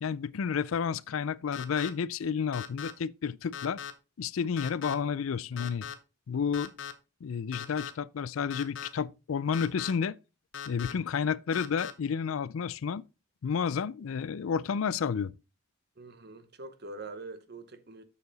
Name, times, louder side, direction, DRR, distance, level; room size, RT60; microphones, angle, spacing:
voice 1, 0.0-3.8 4.2-5.9 6.3-6.7 7.2-10.2 10.7-13.0 13.4-15.3, left 6 dB, 80° left, 0.4 m, -31 dB
sound 1, 1.5-1.9 2.5-2.9 3.5-3.9 4.6-4.9 5.6-5.9 6.5-6.9 7.5-7.9 8.5-8.9 9.5-9.9 10.5-10.9 11.5-11.9, left 8 dB, 60° left, 0.8 m, -39 dB
voice 2, 16.0-18.0, right 3 dB, 50° right, 0.9 m, -44 dB
6.8 x 6.7 x 4.0 m
head